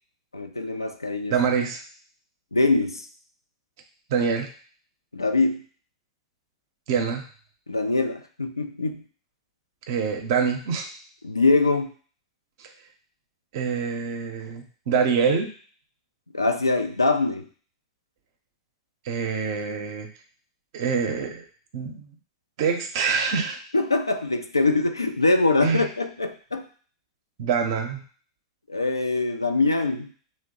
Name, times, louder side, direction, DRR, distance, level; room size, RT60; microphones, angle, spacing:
voice 1, 0.3-1.3 2.5-3.1 5.1-5.6 7.7-9.0 11.2-11.9 16.3-17.5 23.7-26.7 28.7-30.1, left 3 dB, 90° left, 7 dB, 0.3 m, -23 dB
voice 2, 1.3-1.8 4.1-4.5 6.9-7.2 9.9-10.9 12.6-12.7 13.5-15.5 19.0-20.1 20.7-21.4 21.7-22.1 22.6-23.6 25.6-25.9 27.4-28.0, right 6 dB, 55° right, 5 dB, 0.6 m, -25 dB
2.8 x 2.1 x 3.8 m, 0.43 s
figure-of-eight pair, 95°, 2 cm